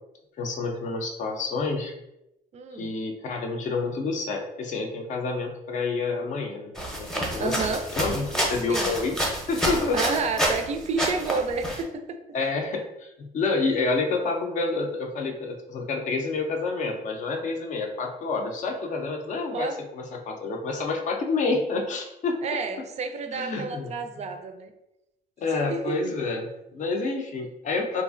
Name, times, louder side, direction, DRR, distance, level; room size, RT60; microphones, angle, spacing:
voice 1, 0.4-1.9 2.7-7.6 8.0-9.2 9.5-10.0 12.3-22.4 23.3-23.9 25.4-28.0, left 3 dB, 45° left, 3 dB, 0.5 m, -28 dB
voice 2, 2.5-2.9 7.4-7.8 8.7-8.9 9.9-12.2 19.5-19.8 22.4-24.7 25.7-26.1, right 4 dB, 40° right, 6 dB, 0.4 m, -30 dB
sound 1, 6.8-10.7 11.0-11.8, equal, 5° left, 0.7 m, -28 dB
3.0 x 2.4 x 2.5 m, 0.89 s
cardioid pair, 110°, 17 cm